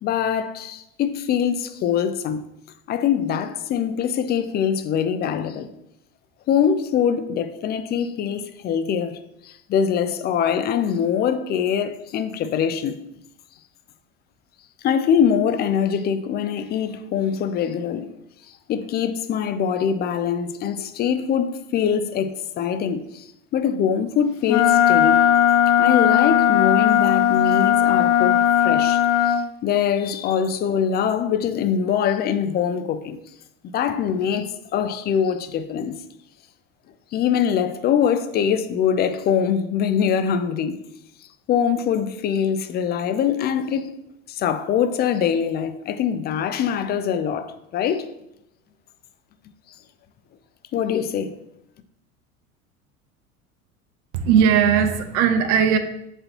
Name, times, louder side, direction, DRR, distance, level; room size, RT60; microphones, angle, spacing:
voice 1, 0.0-2.5 2.9-5.7 6.5-13.0 14.8-18.1 18.5-25.2 25.8-33.2 33.7-36.0 37.1-40.8 41.5-44.0 44.3-48.1 50.7-51.4, left 8 dB, 25° left, 0.5 m, -23 dB
Wind instrument woodwind instrument, 24.5-29.4, left 10 dB, 55° left, 0.9 m, -17 dB
voice 2, 54.1-55.8, right 7 dB, 50° right, 0.8 m, -18 dB
7.4 x 4.3 x 2.9 m
figure-of-eight pair, 80°, 43 cm